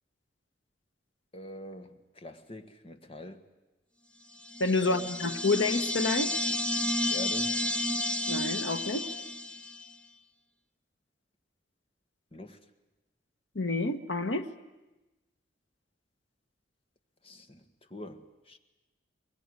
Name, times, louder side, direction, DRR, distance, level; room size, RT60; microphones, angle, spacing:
voice 1, 1.3-3.4 4.8-5.1 7.1-7.6 12.3-12.6 17.2-17.6 17.9-18.6, left 2 dB, 30° left, 1.5 m, -44 dB
sound 1, 4.5-9.9, left 1 dB, 5° left, 0.9 m, -31 dB
voice 2, 4.6-6.3 8.3-9.1 13.5-14.5, left 3 dB, 90° left, 1.5 m, -28 dB
23.0 x 21.5 x 9.8 m
head